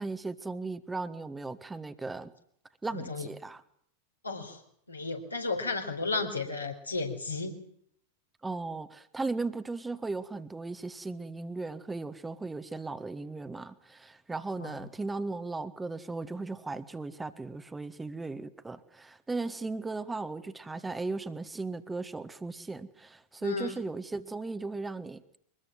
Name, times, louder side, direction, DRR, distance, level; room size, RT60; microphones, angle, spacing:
voice 1, 0.0-2.3 2.8-3.6 8.4-25.2, right 3 dB, 10° right, 10 dB, 1.5 m, -37 dB
voice 2, 2.9-3.3 4.2-4.6 4.9-7.5 14.6-14.8 23.4-23.8, left 3 dB, 80° left, 2 dB, 4.4 m, -33 dB
24.0 x 21.0 x 7.8 m, 0.67 s
figure-of-eight pair, 90°, 0 cm